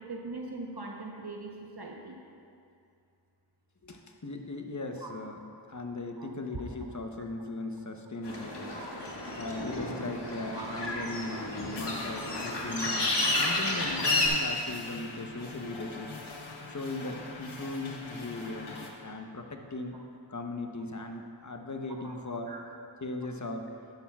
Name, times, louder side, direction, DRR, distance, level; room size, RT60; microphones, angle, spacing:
voice 1, 0.0-2.2 5.0-5.1 6.2-6.6 10.5-10.7 14.0-14.1 18.4-18.6 22.0-22.1 22.5-22.6, right 3 dB, 55° right, 0 dB, 1.0 m, -41 dB
voice 2, 3.8-5.4 5.7-8.7 9.3-16.1 16.7-18.8 19.0-20.0 20.3-22.5 23.0-23.7, left 2 dB, 40° left, 4 dB, 0.9 m, -38 dB
sound 1, 8.2-14.3, left 2 dB, 65° left, 1.5 m, -31 dB
sound 2, 10.3-18.9, left 3 dB, 85° left, 1.0 m, -45 dB
11.5 x 11.0 x 2.4 m, 2.4 s
wide cardioid pair, 45°, 46 cm